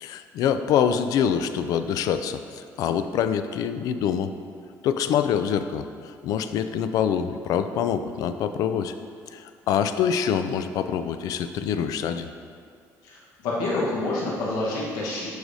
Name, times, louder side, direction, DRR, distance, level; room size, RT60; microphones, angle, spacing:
voice 1, 0.0-4.3 4.8-5.8 6.2-8.9 9.3-12.3, left 8 dB, 70° left, 10 dB, 0.4 m, -25 dB
voice 2, 13.0-15.3, left 2 dB, 85° left, -5 dB, 1.2 m, -28 dB
11.0 x 4.8 x 2.7 m, 2.2 s
cardioid pair, 145°, 6 cm